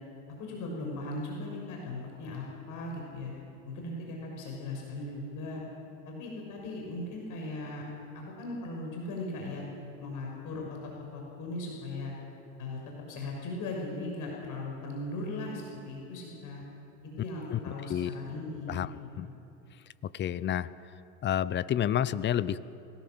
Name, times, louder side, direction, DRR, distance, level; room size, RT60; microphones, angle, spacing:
voice 1, 0.4-3.3 3.6-5.6 6.0-7.9 8.1-9.6 10.0-12.1 12.6-16.6 17.0-18.9 19.2-19.3, left 2 dB, 45° left, -1 dB, 6.3 m, -38 dB
voice 2, 20.0-20.7 21.2-22.6, left 10 dB, 25° left, 17 dB, 0.8 m, -29 dB
24.5 x 18.0 x 7.9 m, 2.8 s
hypercardioid pair, 95°, 42 cm